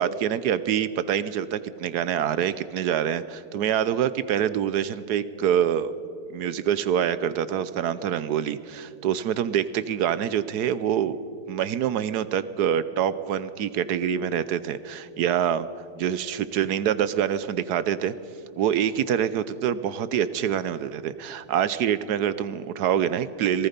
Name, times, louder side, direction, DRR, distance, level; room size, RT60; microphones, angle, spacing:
voice 1, 0.0-5.9 6.3-11.2 11.5-15.7 16.0-18.1 18.6-23.7, right 9 dB, 70° right, 15 dB, 1.2 m, -25 dB
26.0 x 19.0 x 5.2 m, 2.7 s
omnidirectional pair, 1.8 m